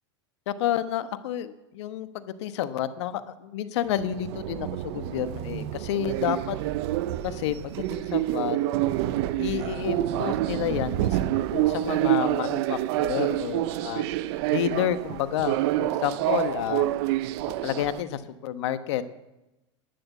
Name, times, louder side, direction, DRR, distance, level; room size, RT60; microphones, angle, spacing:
voice 1, 0.5-6.6 7.2-8.6 9.4-14.1 14.5-16.9 17.6-19.0, left 11 dB, 70° left, 12 dB, 1.1 m, -30 dB
sound 1, 3.9-18.0, right 15 dB, 60° right, 0.7 m, -27 dB
11.5 x 10.0 x 8.1 m, 0.97 s
hypercardioid pair, 110°, 15 cm